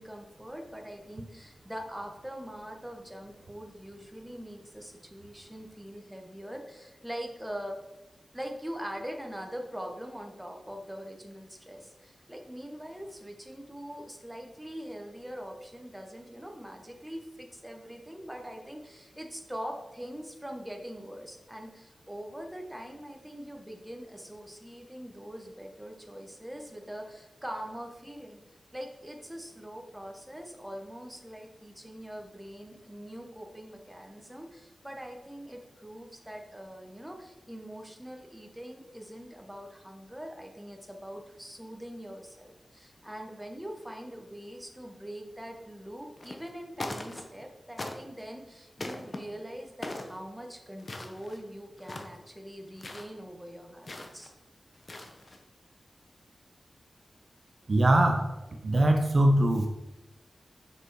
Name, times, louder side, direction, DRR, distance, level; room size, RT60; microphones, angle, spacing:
voice 1, 0.0-7.8 8.3-28.4 28.7-54.3, equal, 5° right, 2 dB, 1.1 m, -43 dB
sound 1, 46.2-46.5 46.8-47.4 47.8-48.3 48.8-49.2 49.8-50.2 50.8-51.4 51.8-52.2 52.8-53.1 53.9-54.3 54.7-55.4, left 2 dB, 40° left, 0.9 m, -40 dB
voice 2, 57.7-58.3 58.6-59.7, right 1 dB, 50° right, 4 dB, 0.7 m, -22 dB
6.3 x 5.4 x 4.7 m, 0.98 s
wide cardioid pair, 110°, 0 cm